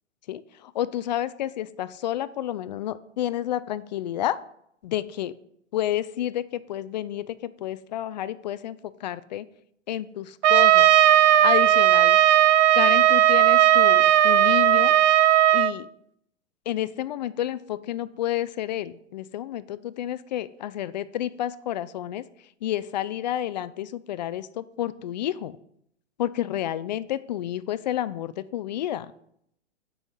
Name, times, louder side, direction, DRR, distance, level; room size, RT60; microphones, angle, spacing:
voice 1, 0.3-4.4 4.8-5.3 5.7-9.5 9.9-10.9 11.4-12.2 12.7-14.9 15.5-15.9 16.7-22.2 22.6-25.5 26.2-29.1, left 12 dB, 40° left, 16 dB, 0.4 m, -30 dB
Trumpet, 10.4-15.7, right 12 dB, 65° right, 0.6 m, -17 dB
7.7 x 5.6 x 6.3 m, 0.72 s
hypercardioid pair, 135°, 37 cm